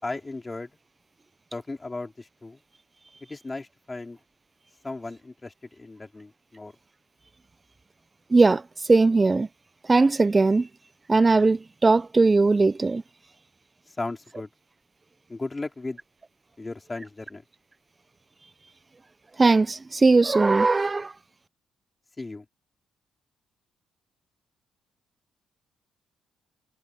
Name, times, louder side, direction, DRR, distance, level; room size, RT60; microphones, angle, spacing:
voice 1, 0.0-0.7 1.5-2.6 3.3-4.2 4.8-6.7 13.9-14.5 15.3-16.0 16.6-17.4 22.2-22.4, left 3 dB, 20° left, 4.3 m, -36 dB
voice 2, 8.3-9.5 9.8-10.7 11.1-13.0 19.4-21.1, right 3 dB, 25° right, 0.4 m, -19 dB
cardioid pair, 90°, 0 cm